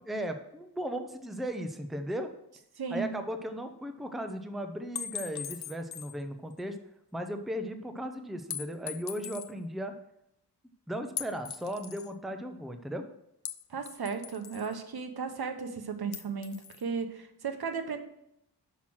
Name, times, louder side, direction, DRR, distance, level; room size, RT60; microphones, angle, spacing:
voice 1, 0.1-2.3 2.9-6.8 7.1-9.9 10.9-13.1, equal, ahead, 6 dB, 0.6 m, -36 dB
voice 2, 2.8-3.2 13.7-18.0, right 5 dB, 65° right, 7 dB, 1.0 m, -35 dB
sound 1, 5.0-6.2 6.6-6.7 8.5-9.5 11.2-12.1 13.4-14.7 16.1-16.8, left 9 dB, 70° left, 0.6 m, -40 dB
6.0 x 5.8 x 6.1 m, 0.78 s
wide cardioid pair, 115°, 40 cm